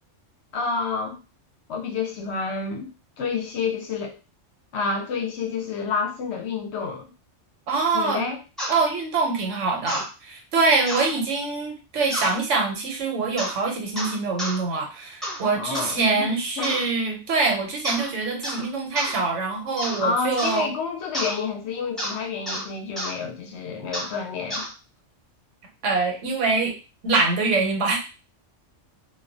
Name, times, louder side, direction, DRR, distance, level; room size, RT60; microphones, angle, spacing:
voice 1, 0.5-1.2 1.7-4.2 4.7-7.0 7.9-8.4 15.5-16.3 16.6-16.8 20.0-24.7, left 5 dB, 65° left, 2 dB, 0.8 m, -29 dB
voice 2, 7.7-8.2 8.7-20.7 25.8-26.7 27.0-28.0, right 4 dB, 75° right, 1 dB, 1.1 m, -24 dB
sound 1, 8.6-8.8 9.9-10.1 10.9-11.1 12.1-12.4 13.4-13.6 14.0-14.6 15.2-15.4 15.7-15.9 16.6-16.9 17.8-18.1 18.4-18.7 19.0-19.2 19.8-20.0 20.4-20.6 21.1-21.4 22.0-22.2 22.5-22.6 23.0-23.1 23.9-24.1 24.5-24.7, equal, ahead, 0.7 m, -30 dB
2.3 x 2.1 x 2.5 m, 0.31 s
omnidirectional pair, 1.3 m